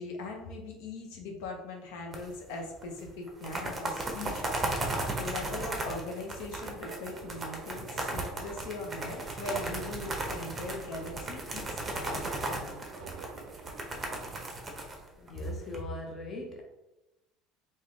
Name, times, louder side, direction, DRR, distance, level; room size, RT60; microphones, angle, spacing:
voice 1, 0.0-12.8, left 2 dB, 80° left, 2 dB, 0.8 m, -40 dB
sound 1, 2.1-2.6 2.8-2.9 3.3-15.8, right 2 dB, 20° right, 0.8 m, -36 dB
sound 2, 6.9-14.3, right 6 dB, 65° right, 0.4 m, -50 dB
voice 2, 15.2-16.6, left 1 dB, 30° left, 1 dB, 0.7 m, -38 dB
3.4 x 2.7 x 3.6 m, 0.97 s
cardioid pair, 125°, 0 cm